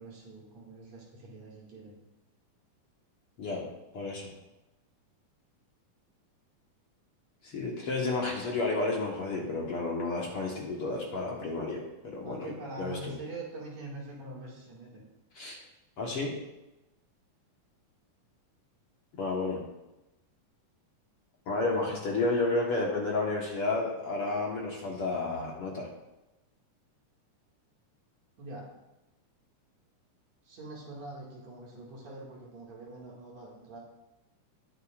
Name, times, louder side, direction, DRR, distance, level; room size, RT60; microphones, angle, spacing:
voice 1, 0.0-2.0 12.2-15.0 28.4-28.7 30.4-33.8, right 2 dB, 60° right, -4 dB, 3.3 m, -44 dB
voice 2, 3.9-4.3 7.4-11.8 12.1-12.5 12.8-13.1 15.4-15.6 16.0-16.4 19.2-19.6 21.5-25.9, left 3 dB, 55° left, -2 dB, 2.1 m, -31 dB
19.5 x 6.7 x 2.5 m, 0.97 s
omnidirectional pair, 3.5 m